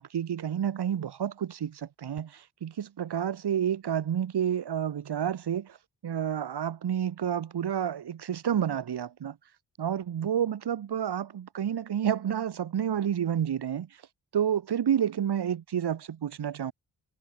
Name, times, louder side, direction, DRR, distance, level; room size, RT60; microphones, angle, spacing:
voice 1, 0.0-5.8 6.0-9.4 9.8-13.9 14.3-16.7, right 9 dB, 65° right, 1.3 m, -29 dB
cardioid pair, 70°, 43 cm